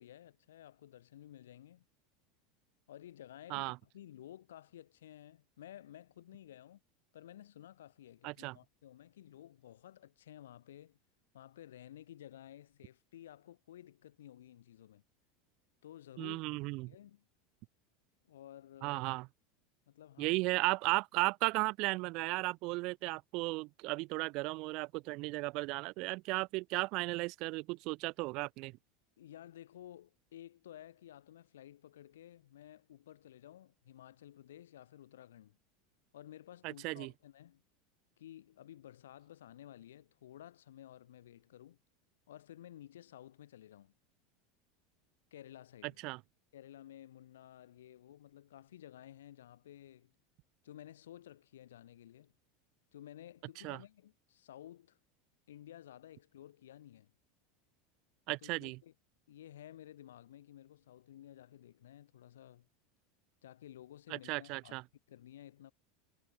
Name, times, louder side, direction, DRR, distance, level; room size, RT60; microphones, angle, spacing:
voice 1, 0.0-1.9 2.9-6.8 7.1-11.0 11.3-15.0 15.8-16.4 16.9-17.3 18.2-19.0 19.9-20.4 29.2-35.6 36.1-37.6 38.2-41.8 42.3-43.9 45.3-46.0 46.5-50.1 50.6-52.4 52.9-55.0 55.5-57.1 58.4-58.9 59.3-62.7 63.4-64.8 65.1-65.7, left 12 dB, 85° left, 6.1 m, -54 dB
voice 2, 8.2-8.6 16.2-16.9 18.8-19.3 20.2-28.8 36.6-37.1 45.8-46.2 53.6-53.8 58.3-58.8 64.1-64.8, right 24 dB, 60° right, 0.5 m, -35 dB
hypercardioid pair, 105°, 0 cm